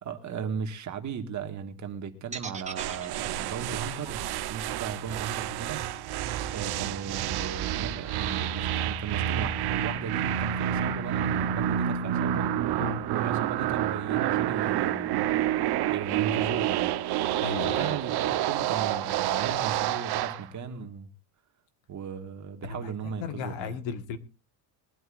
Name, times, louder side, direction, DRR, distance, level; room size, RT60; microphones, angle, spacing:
voice 1, 0.0-4.2 4.5-5.8 6.5-12.5 13.1-15.3 15.9-16.9 17.6-21.1 21.9-23.8, right 6 dB, 35° right, 6 dB, 2.0 m, -36 dB
sound 1, 2.3-6.4, right 5 dB, 15° right, 1.5 m, -42 dB
sound 2, 2.8-20.4, right 11 dB, 50° right, 1.1 m, -29 dB
voice 2, 17.4-18.0 22.6-24.2, left 6 dB, 65° left, 10 dB, 1.8 m, -35 dB
22.0 x 12.5 x 2.6 m, 0.29 s
cardioid pair, 160°, 49 cm